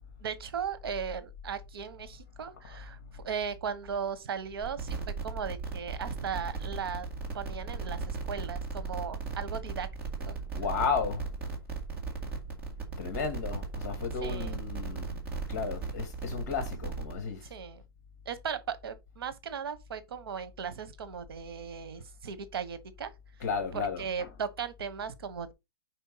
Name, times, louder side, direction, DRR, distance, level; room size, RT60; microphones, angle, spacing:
voice 1, 0.2-7.1 7.3-9.9 10.3-10.4 14.2-14.6 17.5-17.8 18.2-23.1 23.7-25.5, right 7 dB, 65° right, 1.2 m, -37 dB
sound 1, 4.6-17.1, right 4 dB, 10° right, 1.8 m, -37 dB
voice 2, 10.5-11.3 13.0-17.5 23.4-24.3, left 5 dB, 45° left, 2.3 m, -34 dB
5.4 x 4.4 x 5.6 m
hypercardioid pair, 175°, 13 cm